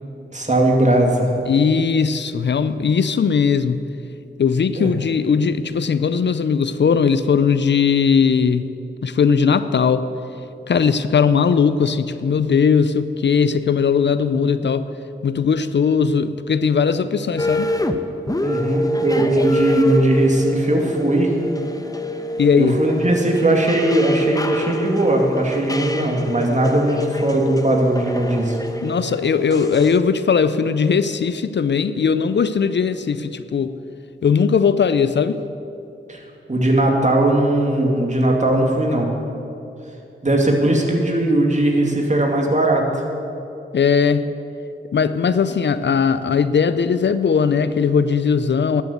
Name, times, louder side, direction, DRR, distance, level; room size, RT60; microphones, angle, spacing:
voice 1, 0.3-1.3 4.8-4.9 18.4-21.3 22.6-28.6 36.1-36.2 36.5-39.1 40.2-42.8, right 1 dB, 35° right, 0 dB, 2.6 m, -18 dB
voice 2, 1.5-3.9 4.4-8.7 9.0-10.1 10.7-14.9 15.2-17.7 22.4-22.8 28.8-33.8 34.2-35.4 43.7-44.3 44.9-48.8, left 6 dB, 60° left, 12 dB, 0.5 m, -18 dB
sound 1, 17.4-18.0 18.3-30.0, equal, 15° left, 1.0 m, -26 dB
11.5 x 8.2 x 8.1 m, 2.8 s
cardioid pair, 40°, 21 cm